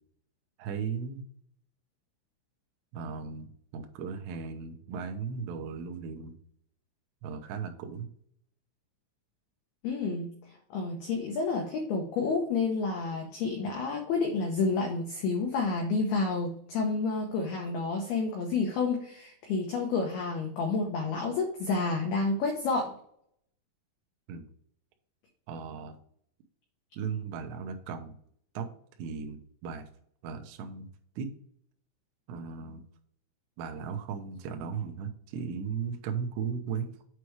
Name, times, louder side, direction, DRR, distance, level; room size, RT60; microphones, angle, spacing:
voice 1, 0.6-1.3 2.9-6.3 7.2-8.1 24.3-24.5 25.5-26.0 27.0-28.1 28.5-28.7 29.0-29.9 30.2-30.9 31.2-31.3 32.3-32.8 33.6-36.9, right 6 dB, 80° right, 5 dB, 2.6 m, -36 dB
voice 2, 9.8-10.3 10.7-22.9, left 4 dB, 85° left, 1 dB, 2.2 m, -29 dB
8.2 x 3.2 x 4.6 m, 0.63 s
omnidirectional pair, 5.9 m